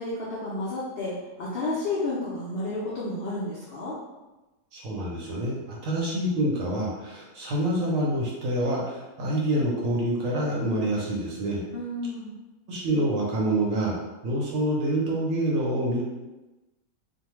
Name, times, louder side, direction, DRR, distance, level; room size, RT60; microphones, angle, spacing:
voice 1, 0.0-4.0 11.7-12.3, left 2 dB, 85° left, -7 dB, 0.5 m, -31 dB
voice 2, 4.7-11.6 12.7-14.0 14.2-16.1, right 1 dB, 70° right, -3 dB, 0.9 m, -27 dB
2.6 x 2.1 x 3.0 m, 1.1 s
omnidirectional pair, 1.7 m